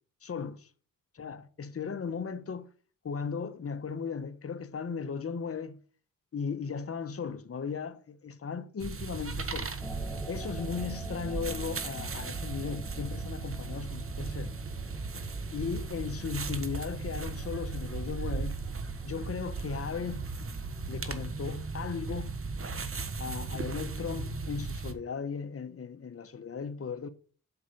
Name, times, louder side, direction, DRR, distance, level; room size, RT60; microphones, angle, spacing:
voice 1, 0.2-0.7 1.2-2.7 3.0-5.8 6.3-9.7 10.3-14.5 15.5-18.6 19.0-20.3 20.9-22.3 23.2-27.1, left 6 dB, 45° left, 1.1 m, -36 dB
sound 1, 8.8-24.9, right 4 dB, 40° right, 1.3 m, -36 dB
sound 2, 9.8-23.6, left 1 dB, 5° left, 1.3 m, -51 dB
8.3 x 5.8 x 6.7 m
cardioid pair, 80°, 33 cm